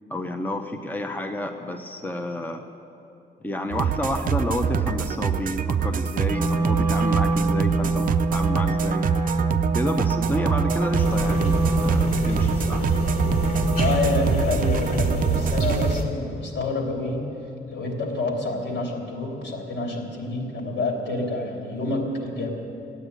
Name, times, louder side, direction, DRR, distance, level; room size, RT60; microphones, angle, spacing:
voice 1, 0.1-2.6 3.4-9.0 9.7-12.9, left 1 dB, 10° left, 4 dB, 0.8 m, -30 dB
sound 1, 3.7-15.9, right 8 dB, 50° right, 0.5 m, -25 dB
Wind instrument woodwind instrument, 6.3-14.3, right 2 dB, 15° right, 1.0 m, -25 dB
sound 2, 11.0-16.0, left 1 dB, 50° left, 1.9 m, -27 dB
voice 2, 13.8-17.3 17.7-22.5, left 2 dB, 75° left, 1 dB, 3.0 m, -28 dB
15.5 x 9.1 x 9.5 m, 2.7 s
cardioid pair, 135°, 19 cm